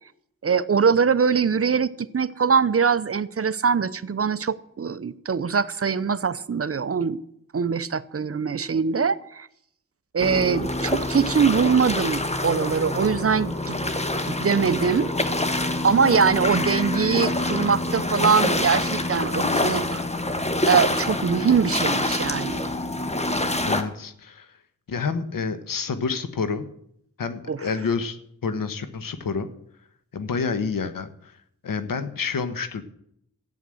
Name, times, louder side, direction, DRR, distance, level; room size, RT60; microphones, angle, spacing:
voice 1, 0.4-7.2 7.5-9.5 10.1-13.8 14.3-15.1 15.8-20.0 20.7-22.6 27.5-27.6, right 6 dB, 45° right, 0.7 m, -22 dB
sound 1, 10.2-23.8, left 1 dB, 20° left, 1.4 m, -26 dB
voice 2, 23.6-24.5 24.9-26.7 27.2-29.5 30.1-31.3 31.6-32.8, left 5 dB, 90° left, 1.2 m, -28 dB
13.5 x 9.3 x 7.8 m
wide cardioid pair, 70°, 33 cm